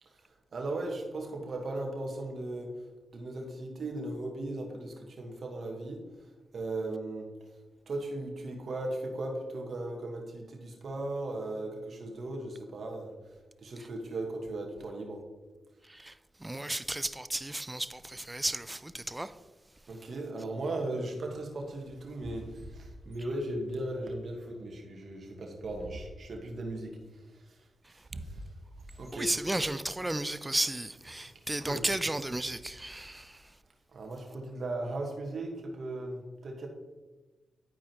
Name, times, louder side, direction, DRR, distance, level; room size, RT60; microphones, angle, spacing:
voice 1, 0.5-2.7 3.1-6.0 6.5-7.3 7.9-13.1 13.6-15.2 19.9-27.0 28.1-28.4 28.9-29.3 31.6-31.8 33.9-36.7, right 2 dB, 65° right, 1.5 m, -37 dB
voice 2, 16.4-19.3 29.1-33.4, right 1 dB, 20° right, 0.4 m, -33 dB
10.5 x 4.7 x 3.0 m
supercardioid pair, 45°, 0 cm